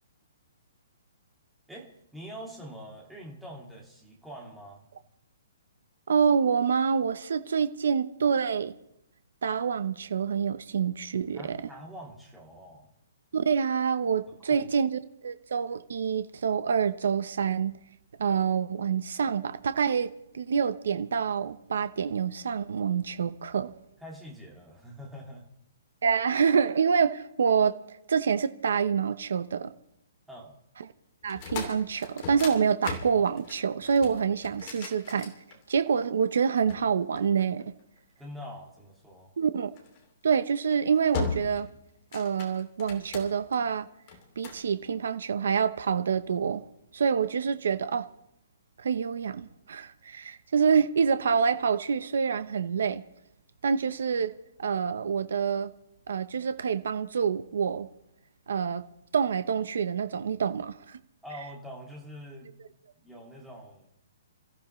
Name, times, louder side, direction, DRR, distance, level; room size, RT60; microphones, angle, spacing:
voice 1, 1.7-4.9 11.3-12.9 14.5-14.7 24.0-25.5 26.1-26.2 30.3-30.5 38.2-39.3 61.2-62.5 63.0-63.9, equal, ahead, 2.2 m, -44 dB
voice 2, 6.1-8.7 9.4-11.6 13.3-17.8 18.2-23.7 26.0-29.7 31.2-35.3 35.7-37.6 39.4-39.7 40.2-41.7 42.1-43.9 44.4-46.7 46.9-48.1 48.8-53.0 53.6-54.3 54.6-55.7 56.1-57.9 58.5-58.8 59.1-61.0, right 6 dB, 65° right, 0.8 m, -27 dB
sound 1, 31.2-36.0 36.7-38.0 39.8-40.0 40.5-40.8 41.1-41.7 42.0-43.6 44.1-44.7, left 4 dB, 25° left, 2.7 m, -37 dB
28.5 x 14.5 x 3.2 m
hypercardioid pair, 175°, 0 cm